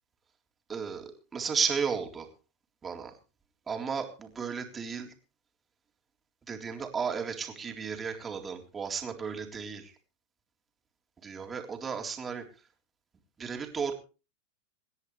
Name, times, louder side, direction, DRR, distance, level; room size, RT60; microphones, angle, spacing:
voice 1, 0.7-2.3 2.8-3.1 3.7-5.1 6.5-9.9 11.2-12.4 13.4-13.9, right 6 dB, 20° right, 4 dB, 3.7 m, -34 dB
27.5 x 10.5 x 3.3 m, 0.33 s
hypercardioid pair, 95°, 0 cm